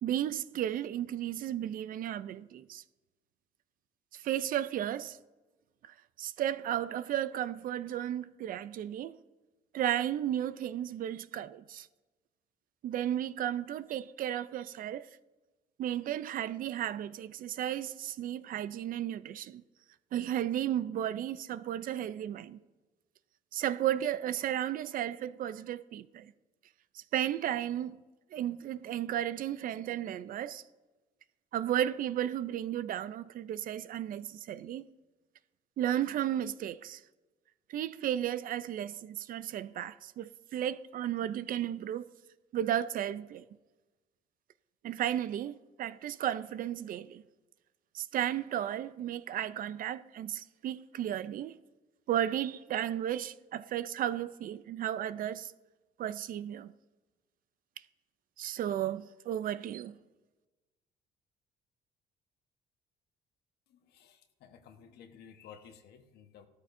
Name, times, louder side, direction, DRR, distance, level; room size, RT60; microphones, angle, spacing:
voice 1, 0.0-2.8 4.1-5.2 6.2-9.2 9.7-11.9 12.8-15.1 15.8-19.6 20.1-22.6 23.5-26.3 26.9-28.0 28.3-30.6 31.5-34.9 35.8-37.0 37.7-42.1 42.5-43.4 44.8-47.2 47.9-51.6 52.1-55.5 56.0-56.7 58.4-59.9, right 11 dB, 55° right, 0.5 m, -34 dB
voice 2, 63.7-66.5, left 7 dB, 70° left, 1.3 m, -54 dB
16.0 x 13.0 x 2.7 m
cardioid pair, 110°, 17 cm